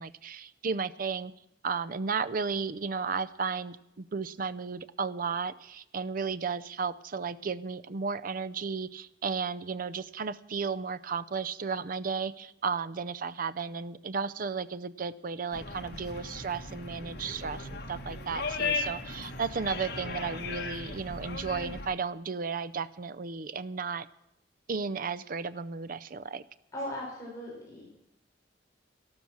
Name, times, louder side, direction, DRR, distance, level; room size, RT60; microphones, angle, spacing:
voice 1, 0.0-1.3 1.6-24.1 24.7-26.4, right 5 dB, 50° right, 16 dB, 0.5 m, -34 dB
sound 1, 15.5-21.9, left 3 dB, 65° left, 1.8 m, -37 dB
voice 2, 26.7-27.9, left 1 dB, 20° left, -5 dB, 6.0 m, -38 dB
13.0 x 12.5 x 6.2 m, 0.84 s
head